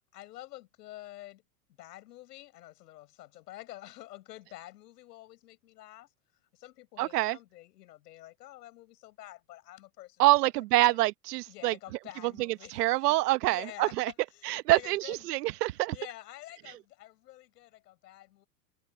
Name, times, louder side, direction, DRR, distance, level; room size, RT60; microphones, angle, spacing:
voice 1, 0.1-1.4 1.8-6.1 6.5-10.5 10.9-11.0 11.5-12.9 13.5-15.3 15.9-18.5, left 16 dB, 75° left, 7.3 m, -48 dB
voice 2, 7.0-7.4 10.2-11.7 12.2-14.1 14.4-16.0, right 18 dB, 75° right, 1.2 m, -26 dB
supercardioid pair, 165°, 48 cm